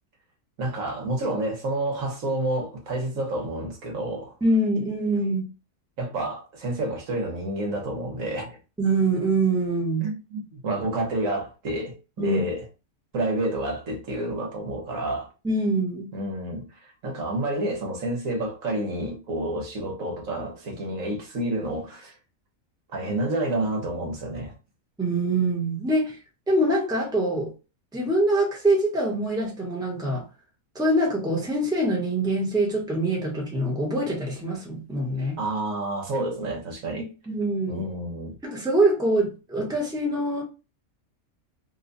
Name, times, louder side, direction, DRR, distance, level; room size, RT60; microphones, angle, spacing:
voice 1, 0.6-4.3 6.0-8.6 10.0-12.6 13.1-15.3 16.1-22.1 22.9-24.5 35.4-37.1 37.7-38.3, right 1 dB, 75° right, 1.4 m, -29 dB
voice 2, 4.4-5.4 8.8-10.1 12.2-12.4 15.4-16.1 25.0-26.2 26.5-27.5 27.9-30.2 30.7-35.4 37.0-37.8 38.4-40.4, right 1 dB, 5° right, 0.9 m, -24 dB
3.1 x 2.3 x 3.9 m
omnidirectional pair, 1.4 m